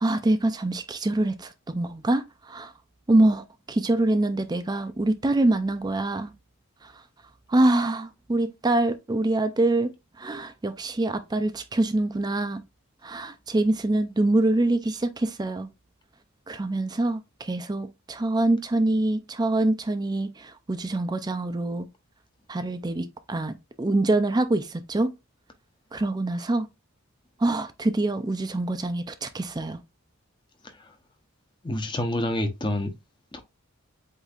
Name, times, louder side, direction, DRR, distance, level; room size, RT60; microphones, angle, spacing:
voice 1, 0.0-2.7 3.1-6.3 6.8-6.9 7.5-9.9 10.2-12.6 13.0-15.7 16.5-21.9 22.5-25.1 25.9-26.7 27.4-29.8, right 2 dB, 20° right, 0.4 m, -25 dB
voice 2, 31.6-32.9 33.3-33.4, left 1 dB, 20° left, 0.8 m, -28 dB
8.0 x 2.7 x 2.4 m
head